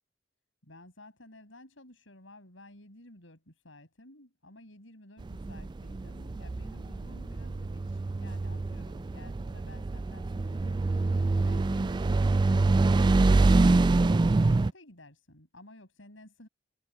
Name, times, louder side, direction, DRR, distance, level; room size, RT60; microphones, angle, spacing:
voice 1, 0.6-12.8 13.3-16.5, left 1 dB, 80° left, 7.4 m, -53 dB
sound 1, 5.2-14.7, right 3 dB, 25° right, 0.3 m, -25 dB
head